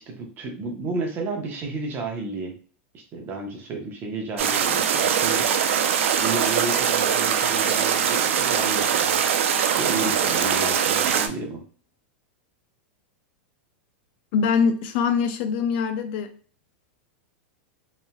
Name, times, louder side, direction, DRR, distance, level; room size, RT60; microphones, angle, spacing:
voice 1, 0.0-2.5 2.9-5.5 6.2-9.2 9.7-11.6, right 3 dB, 30° right, 2 dB, 0.9 m, -32 dB
sound 1, 4.4-11.3, right 8 dB, 85° right, 0.4 m, -22 dB
voice 2, 14.3-16.3, left 6 dB, 55° left, 8 dB, 0.4 m, -23 dB
3.1 x 2.7 x 2.2 m, 0.43 s
supercardioid pair, 130°, 7 cm